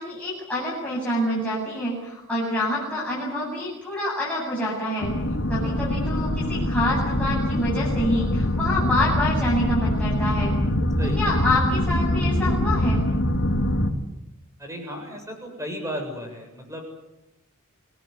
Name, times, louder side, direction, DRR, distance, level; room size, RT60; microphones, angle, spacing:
voice 1, 0.0-5.1 5.5-10.5 11.0-13.0, left 1 dB, 5° left, -6 dB, 7.8 m, -27 dB
sound 1, 5.0-13.9, left 1 dB, 60° left, 2.9 m, -24 dB
voice 2, 14.6-16.8, equal, 15° right, 3 dB, 7.5 m, -34 dB
28.0 x 19.5 x 9.7 m, 0.91 s
head